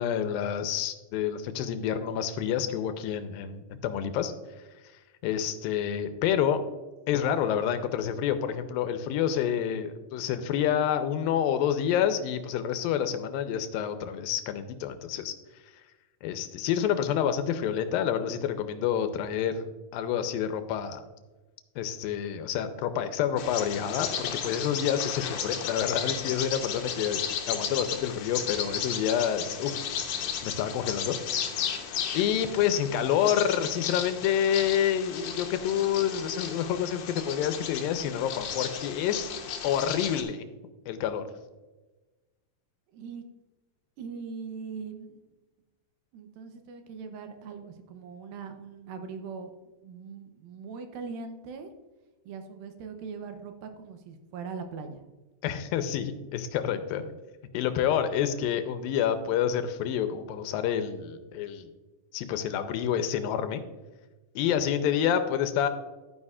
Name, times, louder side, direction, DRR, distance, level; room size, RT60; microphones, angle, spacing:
voice 1, 0.0-4.3 5.2-6.6 7.1-15.4 16.2-19.7 19.9-21.0 21.8-27.2 27.5-29.8 30.4-31.2 32.1-39.3 39.6-40.5 40.9-41.2 55.4-57.0 57.5-61.7 62.1-63.6 64.4-65.7, left 9 dB, 85° left, 9 dB, 2.4 m, -28 dB
Bird vocalization bird call bird song, 23.4-40.2, left 8 dB, 70° left, 2.2 m, -34 dB
voice 2, 42.9-43.2 44.0-45.2 46.1-51.7 52.3-55.0 57.0-57.1, right 5 dB, 80° right, 6 dB, 2.7 m, -41 dB
11.5 x 9.6 x 2.4 m, 1.2 s
omnidirectional pair, 4.1 m